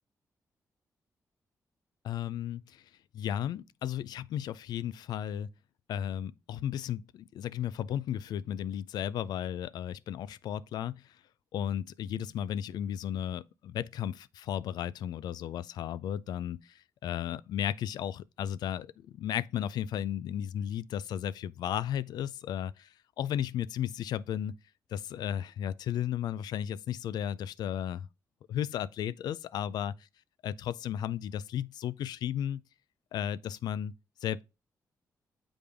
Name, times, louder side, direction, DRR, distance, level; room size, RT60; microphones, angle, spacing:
voice 1, 2.0-2.8 3.1-5.5 5.9-11.1 11.5-22.9 23.2-24.5 24.9-28.1 28.5-29.9 30.4-32.6 33.1-33.9 34.2-34.4, left 10 dB, 90° left, 0.4 m, -34 dB
7.1 x 5.0 x 3.4 m
cardioid pair, 85°, 7 cm